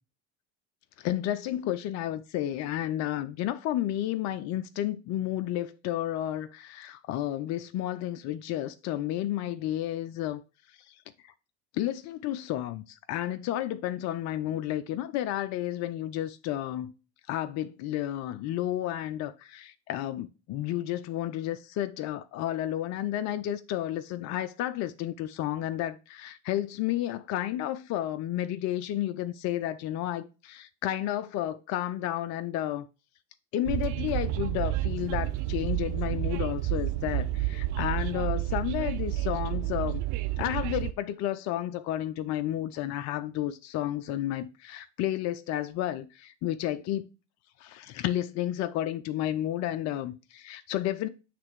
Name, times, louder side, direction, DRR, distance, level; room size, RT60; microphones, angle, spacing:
voice 1, 1.0-10.4 10.9-11.0 11.2-11.3 11.7-16.9 17.3-32.9 33.5-40.0 40.4-47.1 47.6-51.1, left 12 dB, 50° left, 0.6 m, -31 dB
Train, 33.7-40.9, right 15 dB, 60° right, 0.6 m, -30 dB
7.5 x 3.3 x 4.7 m
hypercardioid pair, 80°, 34 cm